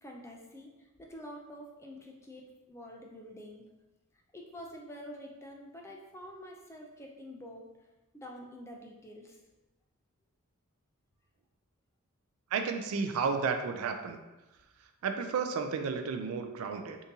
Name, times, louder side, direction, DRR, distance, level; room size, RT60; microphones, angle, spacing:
voice 1, 0.0-3.6 4.3-7.7 8.1-9.4, equal, 10° left, 0 dB, 0.3 m, -47 dB
voice 2, 12.5-14.2 15.0-17.0, right 5 dB, 65° right, 6 dB, 0.3 m, -32 dB
3.7 x 2.6 x 2.7 m, 1.1 s
head